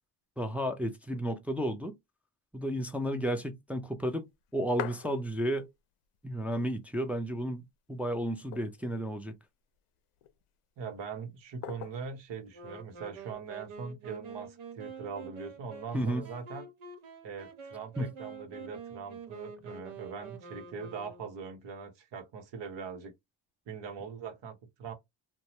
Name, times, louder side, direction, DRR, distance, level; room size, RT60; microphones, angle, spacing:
voice 1, 0.4-2.0 2.5-5.7 6.2-7.6 7.9-9.3 15.9-16.2 18.0-18.1, equal, 5° right, 0.4 m, -32 dB
sound 1, 4.3-5.8 6.1-6.2 6.4-7.2 7.7-7.8 8.3-9.1 9.8-10.4 11.6-12.2 13.3-13.8, left 12 dB, 80° left, 0.6 m, -42 dB
voice 2, 10.8-16.7 17.2-23.1 23.7-24.9, right 5 dB, 60° right, 1.0 m, -41 dB
Wind instrument woodwind instrument, 12.5-21.6, right 5 dB, 85° right, 1.0 m, -47 dB
2.7 x 2.2 x 3.0 m
cardioid pair, 90°, 49 cm